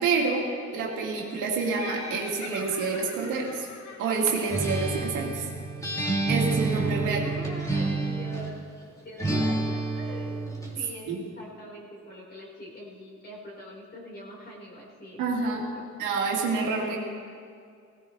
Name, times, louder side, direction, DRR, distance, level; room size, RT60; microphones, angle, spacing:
voice 1, 0.0-3.7 4.0-5.5 6.3-7.2 11.1-11.2 15.2-15.6 16.0-17.0, right 4 dB, 90° right, -1 dB, 2.3 m, -28 dB
Laughter, 1.7-5.3, left 4 dB, 65° left, 1.6 m, -42 dB
Acoustic guitar, 4.5-8.6 9.2-10.8, right 3 dB, 10° left, 2.9 m, -28 dB
voice 2, 7.1-8.6 9.0-10.4 10.7-15.8, equal, 35° left, -4 dB, 4.7 m, -44 dB
17.5 x 17.0 x 3.4 m, 2.2 s
cardioid pair, 90°, 30 cm